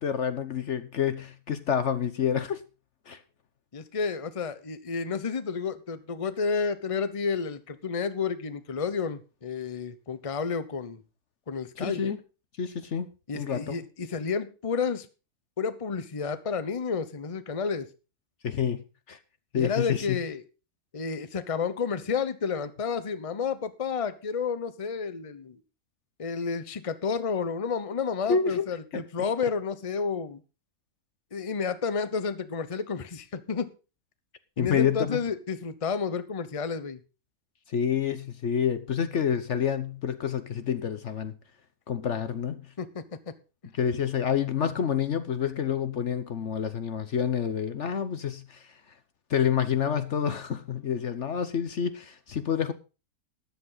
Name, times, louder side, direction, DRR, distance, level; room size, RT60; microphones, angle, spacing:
voice 1, 0.0-2.6 3.1-3.2 11.8-12.2 12.6-13.1 13.3-13.8 18.4-19.2 19.5-20.2 28.3-28.7 28.9-29.0 34.6-35.2 37.7-41.3 41.9-42.7 43.7-48.7 49.3-52.7, left 8 dB, 55° left, 1.1 m, -28 dB
voice 2, 3.7-11.0 11.5-12.0 13.3-15.1 15.6-17.9 19.5-20.4 20.9-25.6 26.2-30.4 31.3-33.7 34.6-37.0 42.8-43.0, left 5 dB, 25° left, 0.9 m, -31 dB
14.0 x 10.5 x 3.9 m
omnidirectional pair, 1.5 m